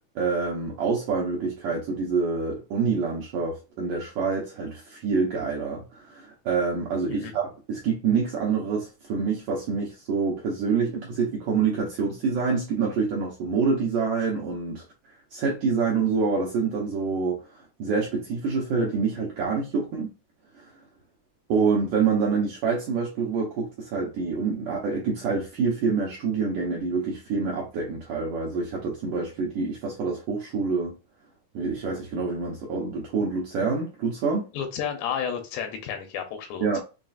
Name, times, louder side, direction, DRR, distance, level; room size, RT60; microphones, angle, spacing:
voice 1, 0.2-14.8 15.3-20.1 20.6-20.7 21.5-30.9 31.5-34.5 36.6-36.8, right 5 dB, 75° right, 1.9 m, -26 dB
voice 2, 34.5-36.8, left 8 dB, 85° left, 3.0 m, -32 dB
6.5 x 2.4 x 2.5 m
omnidirectional pair, 4.8 m